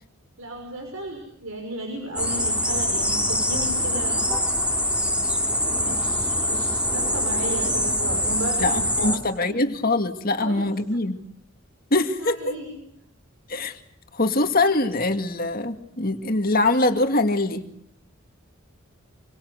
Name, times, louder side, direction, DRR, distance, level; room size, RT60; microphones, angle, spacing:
voice 1, 0.4-4.5 5.8-9.6 10.4-10.6 12.2-12.7, right 1 dB, 75° right, 2 dB, 6.0 m, -34 dB
sound 1, 2.2-9.2, left 1 dB, 5° right, 3.4 m, -24 dB
voice 2, 8.6-11.2 11.9-12.5 13.5-13.8 14.1-17.7, left 2 dB, 45° left, 6 dB, 2.2 m, -23 dB
28.0 x 23.5 x 8.1 m, 0.71 s
head